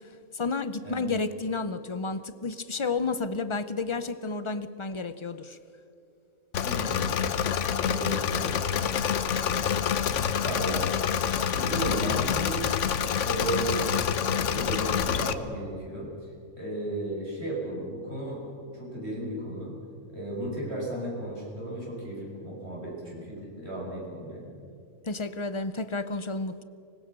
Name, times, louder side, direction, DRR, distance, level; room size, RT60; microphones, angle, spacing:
voice 1, 0.3-5.6 25.0-26.6, left 3 dB, 35° left, 13 dB, 0.5 m, -31 dB
Engine / Mechanisms, 6.5-15.3, left 8 dB, 60° left, 1.1 m, -27 dB
voice 2, 6.6-7.1 7.8-9.0 9.3-9.6 10.2-10.9 11.4-12.6 13.2-14.0 14.3-16.1 16.6-18.4 18.7-19.7 20.1-24.5, right 1 dB, 45° right, -4 dB, 7.2 m, -35 dB
25.0 x 20.0 x 6.8 m, 2.5 s
omnidirectional pair, 1.5 m